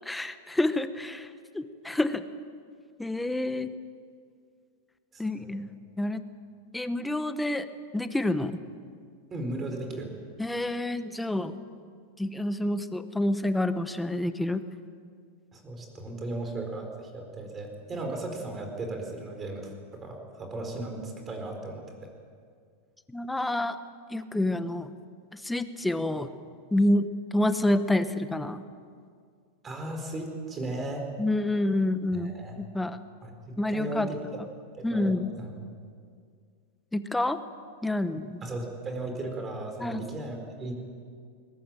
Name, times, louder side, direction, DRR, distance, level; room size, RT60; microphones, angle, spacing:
voice 1, 0.0-2.2 3.0-3.7 5.2-5.7 6.0-6.2 6.7-7.7 7.9-8.6 10.4-11.5 12.2-14.6 23.1-23.8 24.1-24.9 25.3-26.3 26.7-28.6 31.2-33.0 33.6-34.1 34.8-35.3 36.9-37.4 37.8-38.4 39.8-40.0, left 1 dB, 5° left, 10 dB, 1.0 m, -28 dB
voice 2, 5.1-5.5 9.3-10.1 15.5-22.1 29.6-31.1 32.1-32.6 33.2-34.2 34.7-35.6 38.4-40.7, right 2 dB, 20° right, 4 dB, 4.6 m, -36 dB
21.5 x 21.0 x 9.1 m, 2.2 s
supercardioid pair, 155°, 0 cm